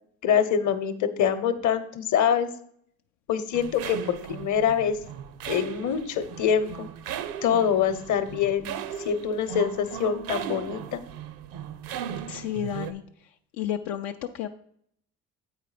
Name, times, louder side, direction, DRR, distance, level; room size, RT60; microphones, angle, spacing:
voice 1, 0.2-2.5 3.3-5.0 5.5-6.9 7.4-8.7 9.0-11.0, left 8 dB, 55° left, 10 dB, 0.9 m, -25 dB
sound 1, 3.5-12.9, right 8 dB, 75° right, 0.6 m, -37 dB
voice 2, 12.3-14.5, left 10 dB, 85° left, 4 dB, 0.5 m, -32 dB
8.0 x 4.8 x 4.9 m, 0.67 s
supercardioid pair, 70°, 36 cm